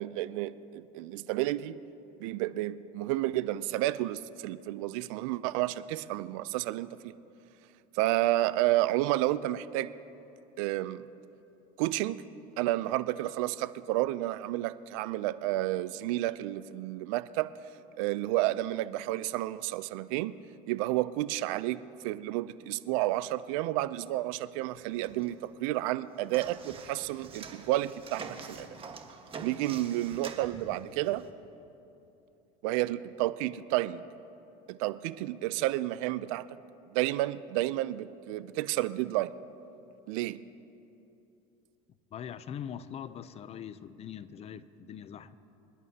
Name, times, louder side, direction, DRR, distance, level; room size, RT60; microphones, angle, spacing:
voice 1, 0.0-1.8 2.2-7.1 7.9-9.9 10.6-11.1 11.8-12.3 12.6-17.5 17.9-20.3 20.7-28.7 29.4-31.2 32.6-34.0 34.7-36.4 36.9-39.3 40.1-40.4, right 16 dB, 75° right, 15 dB, 0.5 m, -31 dB
sound 1, 24.7-25.6 25.9-31.3, right 5 dB, 30° right, 1.5 m, -46 dB
voice 2, 42.1-45.4, left 8 dB, 40° left, 14 dB, 0.6 m, -42 dB
26.5 x 11.0 x 2.9 m, 2.8 s
supercardioid pair, 105°, 17 cm